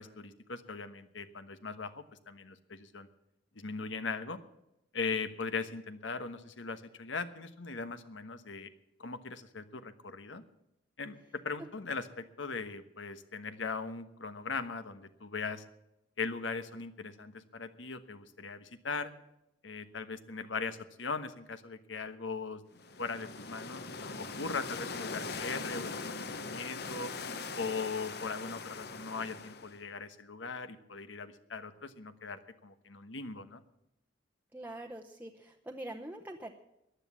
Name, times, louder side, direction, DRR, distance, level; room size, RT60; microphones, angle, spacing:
voice 1, 0.0-3.1 3.5-4.4 4.9-8.7 9.0-10.4 11.0-15.6 16.2-19.1 19.6-22.6 23.0-27.1 27.6-33.6, left 4 dB, 85° left, 10 dB, 1.2 m, -39 dB
sound 1, 22.8-29.8, left 4 dB, 55° left, 1.0 m, -41 dB
voice 2, 34.5-36.5, right 1 dB, 10° right, 2 dB, 0.8 m, -44 dB
14.5 x 10.5 x 7.3 m, 0.86 s
head